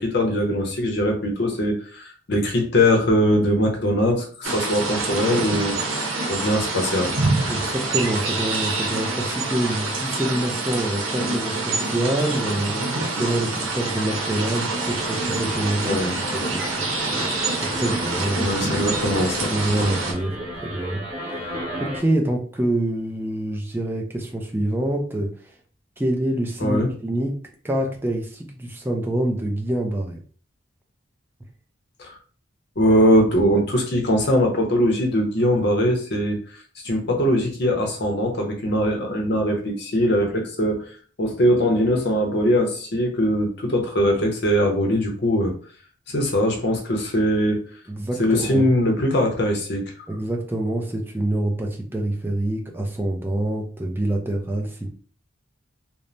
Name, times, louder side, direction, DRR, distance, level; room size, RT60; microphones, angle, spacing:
voice 1, 0.0-5.8 6.3-7.1 15.8-16.2 18.4-19.9 26.6-26.9 32.0-32.1 32.8-36.4 36.8-40.8 41.2-45.5 46.1-47.6 48.2-49.8, equal, 55° left, 2 dB, 0.7 m, -21 dB
sound 1, 4.4-20.1, right 3 dB, 80° right, 0.8 m, -26 dB
voice 2, 7.5-16.0 16.3-18.6 18.9-20.3 20.6-21.0 21.8-25.5 26.0-27.4 27.6-30.2 47.9-48.7 50.1-54.9, right 1 dB, 10° right, 1 dB, 0.4 m, -26 dB
sound 2, 14.8-22.0, equal, 40° right, 0.8 m, -34 dB
3.1 x 2.1 x 2.6 m, 0.43 s
head